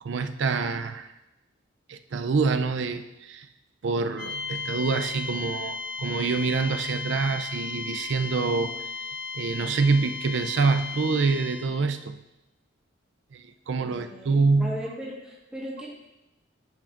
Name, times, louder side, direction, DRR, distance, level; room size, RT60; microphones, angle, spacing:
voice 1, 0.0-1.1 1.9-3.5 3.8-8.8 9.3-12.2 13.3-14.8, right 4 dB, 65° right, 9 dB, 0.4 m, -26 dB
sound 1, 4.2-11.9, left 4 dB, 50° left, 0.7 m, -35 dB
voice 2, 13.8-14.3 14.6-15.9, equal, 5° right, -5 dB, 1.4 m, -37 dB
10.5 x 5.8 x 2.5 m, 0.94 s
head